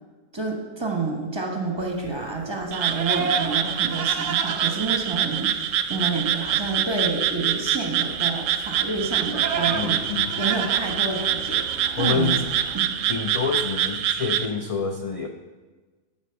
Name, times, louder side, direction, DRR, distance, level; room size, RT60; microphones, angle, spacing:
voice 1, 0.3-10.0 10.4-11.6 12.0-12.4 12.7-12.9, right 3 dB, 20° right, 1 dB, 1.1 m, -29 dB
Livestock farm animals working animals, 1.8-12.8, right 5 dB, 45° right, 0.6 m, -34 dB
Frog, 2.7-14.5, right 10 dB, 75° right, 0.9 m, -25 dB
sound 1, 8.6-14.5, right 2 dB, 75° left, 3.5 m, -44 dB
voice 2, 9.7-10.3 12.0-12.4 13.1-15.3, left 5 dB, 55° left, 3 dB, 0.4 m, -27 dB
8.1 x 5.8 x 6.8 m, 1.3 s
omnidirectional pair, 1.4 m